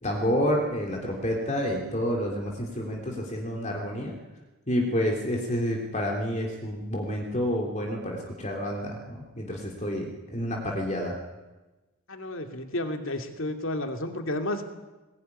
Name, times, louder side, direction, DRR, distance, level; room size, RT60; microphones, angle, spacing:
voice 1, 0.0-4.2 4.7-11.2, equal, 30° left, 0 dB, 3.3 m, -29 dB
voice 2, 12.1-14.6, left 1 dB, 60° left, 6 dB, 2.7 m, -31 dB
21.0 x 20.5 x 9.9 m, 1.1 s
head